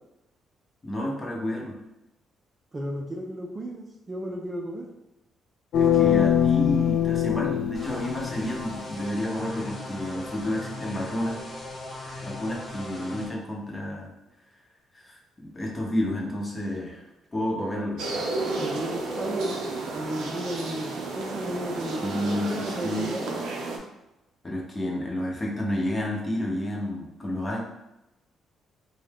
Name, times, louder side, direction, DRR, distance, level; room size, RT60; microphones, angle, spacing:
voice 1, 0.8-1.7 5.8-11.4 12.2-14.1 14.9-17.0 17.3-18.0 22.0-23.1 24.4-27.6, left 1 dB, 25° left, -2 dB, 0.8 m, -30 dB
voice 2, 2.7-4.9 18.6-19.6 19.9-22.2 22.5-23.3, right 1 dB, 30° right, 0 dB, 0.4 m, -34 dB
sound 1, 5.7-8.7, left 9 dB, 85° left, 0.3 m, -23 dB
sound 2, 7.7-13.3, left 2 dB, 45° left, 1.1 m, -38 dB
sound 3, 18.0-23.8, right 3 dB, 85° right, 0.5 m, -32 dB
2.6 x 2.3 x 3.4 m, 0.91 s
cardioid pair, 90°, 0 cm